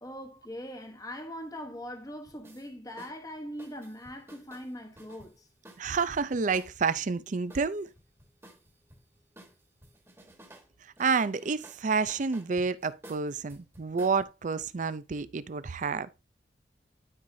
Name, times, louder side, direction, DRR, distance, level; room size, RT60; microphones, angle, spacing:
voice 1, 0.0-5.5, equal, 20° left, 1.1 m, -41 dB
sound 1, 2.3-2.7 3.0-3.2 3.6-7.0 7.5-9.1 9.4-10.7 11.0-14.2, right 1 dB, 15° right, 1.5 m, -53 dB
voice 2, 5.8-7.9 11.0-16.1, right 5 dB, 45° right, 0.5 m, -29 dB
12.0 x 4.8 x 2.7 m
head